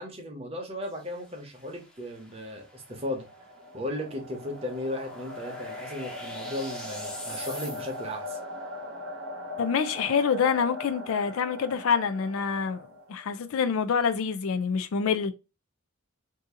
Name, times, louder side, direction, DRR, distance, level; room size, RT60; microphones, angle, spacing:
voice 1, 0.0-3.2 3.7-8.4, left 1 dB, 30° right, 0.8 m, -36 dB
sound 1, 0.8-8.3, equal, 5° left, 0.7 m, -46 dB
sound 2, 2.6-13.4, left 1 dB, 75° right, 0.8 m, -40 dB
voice 2, 9.6-15.3, left 6 dB, 70° left, 0.4 m, -26 dB
2.7 x 2.6 x 3.6 m
head